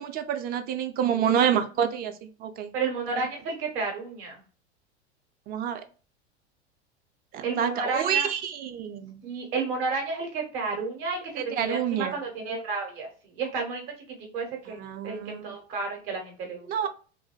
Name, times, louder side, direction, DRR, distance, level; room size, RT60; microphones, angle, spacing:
voice 1, 0.0-2.7 5.5-5.8 7.3-9.2 11.4-12.1 14.8-15.5 16.7-16.9, right 8 dB, 30° right, 8 dB, 0.4 m, -28 dB
voice 2, 2.7-4.4 7.4-8.3 9.2-16.9, right 4 dB, 55° right, 1 dB, 1.3 m, -32 dB
3.0 x 2.5 x 2.3 m, 0.38 s
hypercardioid pair, 85°, 34 cm